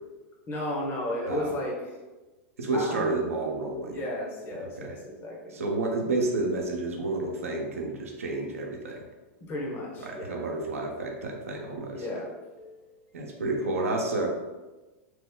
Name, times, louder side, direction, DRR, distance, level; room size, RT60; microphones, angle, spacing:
voice 1, 0.5-2.0 2.7-3.1 3.8-5.4 9.5-10.4 11.9-12.3 12.6-12.9, left 1 dB, 30° left, -3 dB, 1.0 m, -34 dB
voice 2, 2.6-4.0 4.6-4.9 5.5-9.0 10.0-12.0 13.1-14.3, right 2 dB, 90° right, 0 dB, 0.6 m, -30 dB
3.0 x 2.1 x 3.7 m, 1.2 s
hypercardioid pair, 110°, 7 cm